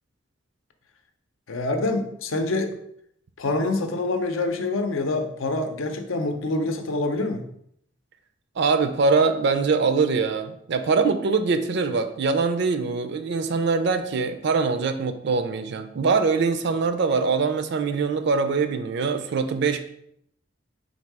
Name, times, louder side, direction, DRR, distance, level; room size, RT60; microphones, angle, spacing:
voice 1, 1.5-2.7 3.4-7.5, left 2 dB, 85° left, 6 dB, 0.6 m, -26 dB
voice 2, 8.6-19.8, right 4 dB, 60° right, 8 dB, 0.4 m, -23 dB
4.0 x 2.7 x 4.7 m, 0.71 s
head